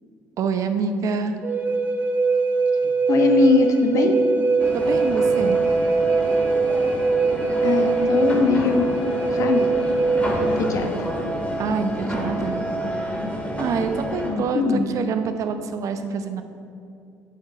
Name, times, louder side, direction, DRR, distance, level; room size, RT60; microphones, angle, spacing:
voice 1, 0.4-1.4 4.7-5.6 11.6-12.6 13.6-16.4, right 5 dB, 55° right, 8 dB, 0.8 m, -26 dB
Wind instrument woodwind instrument, 1.4-10.7, right 4 dB, 30° right, 1.3 m, -22 dB
voice 2, 2.8-4.2 7.6-8.9 9.3-9.7 10.6-11.1 14.2-14.8, left 4 dB, 55° left, 5 dB, 1.2 m, -21 dB
sound 1, 4.6-14.3, equal, 20° left, 2.1 m, -29 dB
8.6 x 7.3 x 5.0 m, 2.6 s
supercardioid pair, 75°, 6 cm